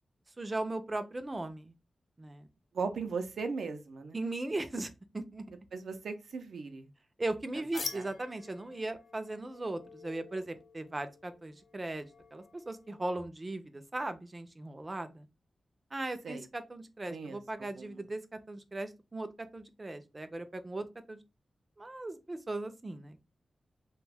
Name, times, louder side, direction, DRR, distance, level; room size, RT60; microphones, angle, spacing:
voice 1, 0.4-1.7 2.2-2.5 4.1-5.5 7.2-15.3 15.9-18.2 18.5-19.3 19.5-21.2 21.8-23.3, right 2 dB, 25° right, 10 dB, 0.4 m, -38 dB
voice 2, 2.7-4.2 5.7-6.9 7.7-8.1 16.2-16.5 17.1-18.0, right 4 dB, 85° right, 7 dB, 0.4 m, -38 dB
sound 1, 7.7-13.3, left 4 dB, 60° left, 0.5 m, -47 dB
2.4 x 2.2 x 3.3 m, 0.27 s
wide cardioid pair, 95°, 0 cm